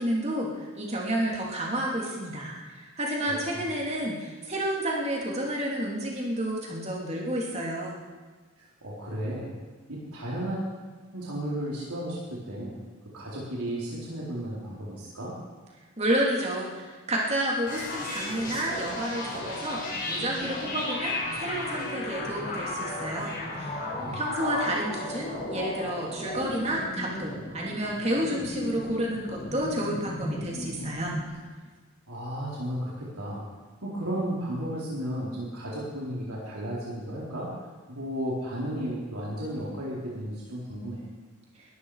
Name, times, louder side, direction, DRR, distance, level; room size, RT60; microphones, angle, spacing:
voice 1, 0.0-8.0 16.0-31.1, right 1 dB, 30° right, -2 dB, 3.1 m, -30 dB
voice 2, 3.3-3.7 8.8-9.5 9.9-10.7 11.1-12.8 13.1-15.3 23.5-24.2 32.1-33.4 33.8-37.5 37.9-41.0, equal, 90° right, -6 dB, 4.1 m, -34 dB
sound 1, 17.7-31.3, left 1 dB, 40° left, 5.2 m, -35 dB
21.0 x 13.5 x 5.0 m, 1.4 s
head